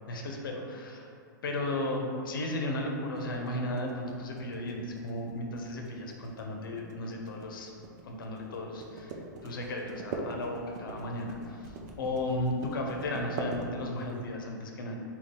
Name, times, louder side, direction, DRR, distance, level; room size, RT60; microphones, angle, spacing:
voice 1, 0.1-1.1 1.4-7.7 8.0-15.0, left 1 dB, 90° left, 1 dB, 0.6 m, -35 dB
sound 1, 3.2-14.2, right 3 dB, 55° right, 0.5 m, -42 dB
3.8 x 2.3 x 3.6 m, 2.4 s
hypercardioid pair, 155°, 11 cm